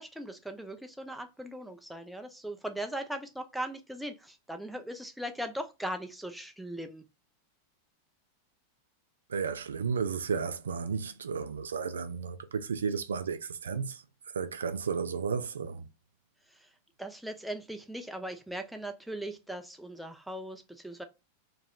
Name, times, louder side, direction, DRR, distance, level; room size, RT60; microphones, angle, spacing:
voice 1, 0.0-7.0 16.5-16.7 17.0-21.0, right 1 dB, ahead, 0.5 m, -39 dB
voice 2, 9.3-14.0 14.3-15.9, right 5 dB, 70° right, 0.3 m, -33 dB
2.9 x 2.9 x 2.3 m
figure-of-eight pair, 90°, 0 cm